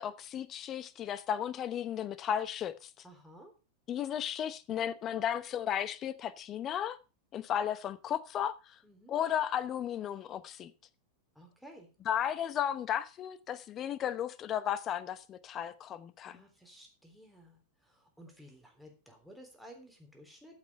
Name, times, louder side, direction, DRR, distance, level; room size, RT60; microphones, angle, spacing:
voice 1, 0.0-2.9 3.9-7.0 7.3-8.8 9.1-10.7 12.1-16.4, left 9 dB, 30° left, 0.9 m, -34 dB
voice 2, 3.0-3.5 8.8-9.2 11.4-11.9 16.2-20.6, equal, ahead, 3.4 m, -55 dB
14.5 x 6.3 x 5.5 m
figure-of-eight pair, 90°, 0 cm